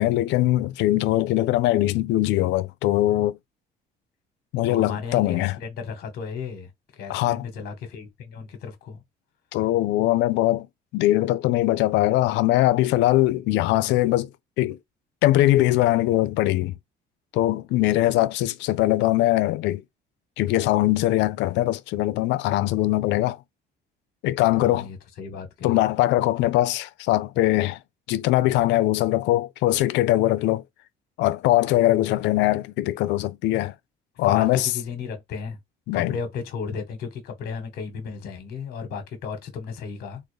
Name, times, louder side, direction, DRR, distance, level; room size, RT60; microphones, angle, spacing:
voice 1, 0.0-3.4 4.5-5.6 7.1-7.5 9.5-10.7 10.9-14.3 14.6-14.8 15.2-16.7 17.3-19.8 20.4-23.4 24.2-24.9 25.6-27.8 28.1-30.6 31.2-33.7 34.2-34.7 35.9-36.2, left 16 dB, 80° left, 0.5 m, -21 dB
voice 2, 4.7-6.7 7.0-9.0 24.6-25.8 32.1-32.2 34.2-35.6 35.9-40.2, left 6 dB, 55° left, 1.2 m, -34 dB
3.7 x 2.3 x 3.2 m
cardioid pair, 155°, 18 cm